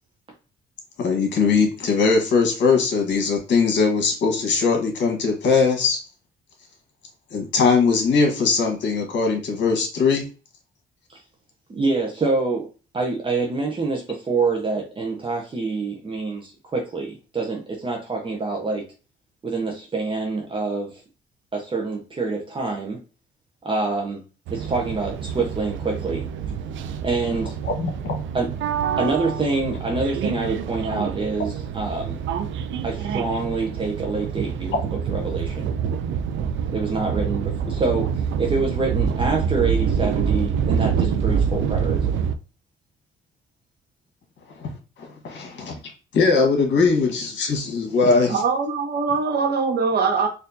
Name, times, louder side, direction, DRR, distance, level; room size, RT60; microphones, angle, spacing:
voice 1, 1.0-6.0 7.3-10.3 27.6-28.2 44.6-44.7 45.0-45.8 46.1-48.4, left 4 dB, 65° left, 1.4 m, -20 dB
voice 2, 11.7-12.7 12.9-18.8 19.4-21.0 21.5-23.0 23.6-24.2 24.5-26.3 27.0-27.6 28.3-28.5 29.0-32.2 32.8-34.8 35.1-35.7 36.7-42.2, right 3 dB, 25° right, 0.7 m, -26 dB
sound 1, 24.5-42.4, right 7 dB, 75° right, 0.4 m, -26 dB
voice 3, 48.3-50.3, right 5 dB, 55° right, 1.0 m, -22 dB
4.2 x 2.6 x 2.7 m
cardioid pair, 90°, 20 cm